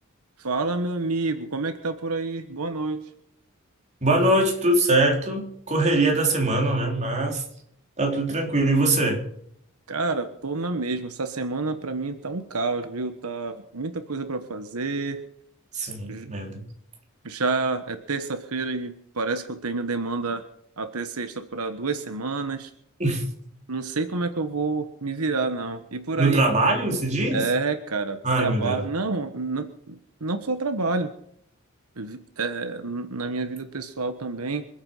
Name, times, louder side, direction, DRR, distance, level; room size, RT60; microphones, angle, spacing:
voice 1, 0.4-3.0 9.9-15.2 16.1-16.3 17.2-20.4 20.8-22.7 23.7-26.4 27.3-31.1 32.0-34.7, right 3 dB, 85° right, 8 dB, 1.3 m, -28 dB
voice 2, 4.0-7.4 8.0-9.2 15.7-16.7 23.0-23.2 26.2-27.5 28.2-28.8, right 2 dB, 35° right, 0 dB, 4.1 m, -22 dB
26.0 x 8.9 x 5.6 m, 0.72 s
head